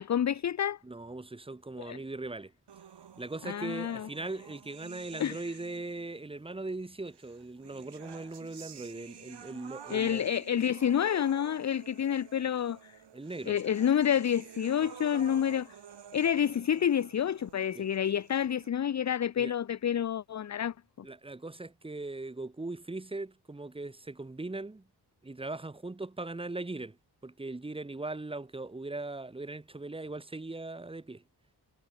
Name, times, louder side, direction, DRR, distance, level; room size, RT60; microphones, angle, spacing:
voice 1, 0.0-0.8 1.8-2.0 3.4-4.1 5.2-5.4 9.9-12.9 13.5-15.7 16.1-20.7, left 9 dB, 45° left, 0.5 m, -29 dB
voice 2, 0.8-2.5 3.2-10.3 13.1-13.6 17.7-17.9 19.4-19.5 21.0-24.8 25.2-27.0 27.2-31.2, right 2 dB, 15° right, 0.9 m, -39 dB
sound 1, 2.7-6.1 7.1-18.7, right 8 dB, 75° right, 2.1 m, -51 dB
cardioid pair, 80°, 41 cm